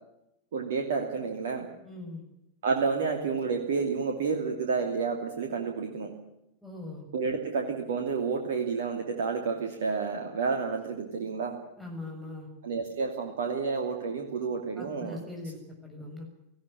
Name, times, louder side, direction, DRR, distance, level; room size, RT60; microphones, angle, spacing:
voice 1, 0.5-1.7 2.6-6.1 7.1-11.6 12.6-15.2, right 5 dB, 60° right, 3 dB, 2.7 m, -30 dB
voice 2, 1.8-2.2 6.6-7.0 11.8-12.5 14.8-16.2, left 2 dB, ahead, -1 dB, 6.9 m, -41 dB
19.0 x 16.5 x 9.9 m, 0.85 s
figure-of-eight pair, 90°, 0 cm